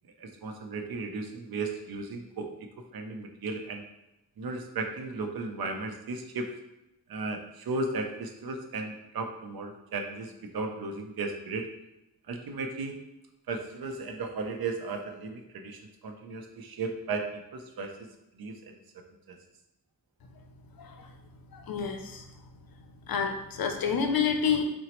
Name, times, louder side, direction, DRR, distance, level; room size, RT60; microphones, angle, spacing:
voice 1, 0.2-2.5 2.9-3.9 4.4-6.5 7.1-11.7 12.3-13.0 13.5-17.9 18.4-18.6 19.3-19.4, right 3 dB, 80° right, 4 dB, 0.5 m, -35 dB
voice 2, 21.5-22.2 23.1-24.7, left 6 dB, 75° left, 5 dB, 0.5 m, -28 dB
3.9 x 2.0 x 2.9 m, 0.92 s
wide cardioid pair, 100°, 36 cm